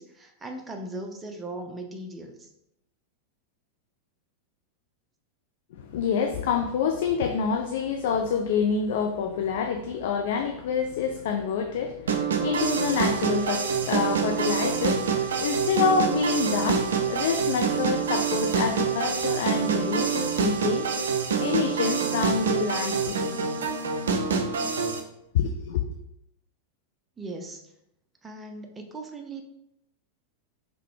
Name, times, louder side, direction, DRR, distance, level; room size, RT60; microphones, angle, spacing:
voice 1, 0.0-2.5 27.2-27.6 28.2-29.4, right 2 dB, 15° right, 0.6 m, -38 dB
voice 2, 5.7-20.9 21.4-23.3 25.3-25.8, left 6 dB, 55° left, 0.3 m, -27 dB
sound 1, 12.1-25.0, right 6 dB, 65° right, 0.5 m, -26 dB
3.7 x 3.3 x 3.1 m
figure-of-eight pair, 90°, 0 cm